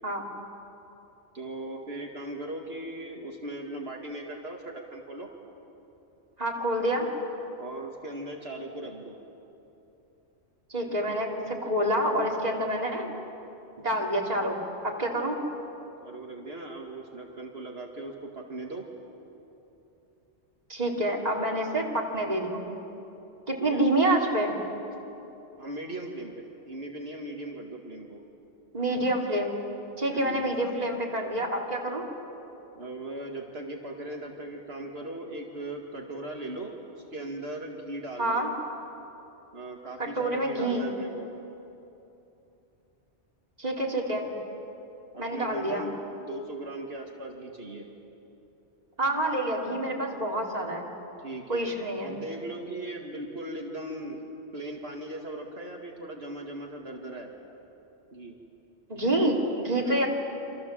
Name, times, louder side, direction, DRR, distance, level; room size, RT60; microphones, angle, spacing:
voice 1, 1.3-5.3 7.6-9.2 16.0-18.9 23.6-23.8 25.6-28.2 30.1-30.5 32.7-38.5 39.5-41.3 45.1-45.9 46.2-47.9 51.2-51.7 52.0-57.3 58.1-58.4 59.8-60.1, right 1 dB, 65° right, 1 dB, 2.3 m, -38 dB
voice 2, 6.4-7.1 10.7-13.1 13.8-15.4 20.7-22.7 23.5-24.5 28.7-29.5 30.0-32.0 38.2-38.5 40.0-40.9 43.6-44.2 45.2-45.9 49.0-50.9 51.5-52.1 58.9-60.1, right 1 dB, 35° right, -2 dB, 3.4 m, -27 dB
28.0 x 26.5 x 7.5 m, 3.0 s
omnidirectional pair, 1.2 m